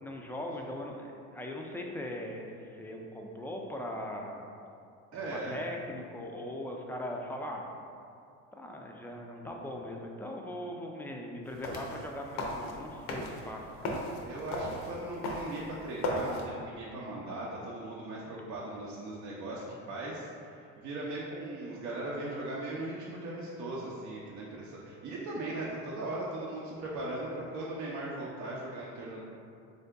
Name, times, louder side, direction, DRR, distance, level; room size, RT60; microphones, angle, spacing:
voice 1, 0.0-4.4 5.2-7.6 8.6-14.0, left 1 dB, 5° left, 0 dB, 0.3 m, -40 dB
voice 2, 5.1-5.5 14.2-29.2, right 2 dB, 60° right, -5 dB, 0.6 m, -38 dB
sound 1, 11.5-16.5, left 1 dB, 80° left, 0.7 m, -37 dB
3.7 x 2.7 x 3.3 m, 2.4 s
cardioid pair, 100°, 33 cm